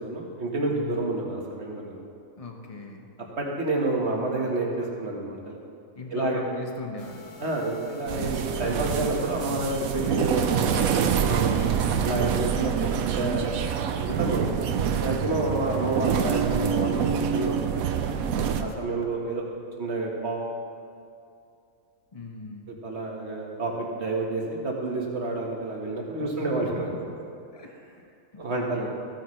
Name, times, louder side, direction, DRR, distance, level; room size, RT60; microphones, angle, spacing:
voice 1, 0.0-2.0 3.4-5.6 6.1-6.4 7.4-11.5 12.0-12.7 13.0-17.6 18.6-19.4 19.8-20.5 22.8-26.9 28.4-28.9, right 2 dB, 50° right, -1 dB, 1.7 m, -29 dB
voice 2, 0.7-1.0 2.4-3.1 5.9-7.4 11.9-12.4 18.3-18.8 22.1-22.8 26.2-27.3 27.5-27.8 28.3-29.0, left 3 dB, 30° left, 1 dB, 1.0 m, -39 dB
sound 1, 7.0-11.9, left 2 dB, 70° left, 1.5 m, -47 dB
sound 2, 8.1-18.6, right 8 dB, 85° right, 1.1 m, -26 dB
15.0 x 9.4 x 3.2 m, 2.5 s
omnidirectional pair, 1.4 m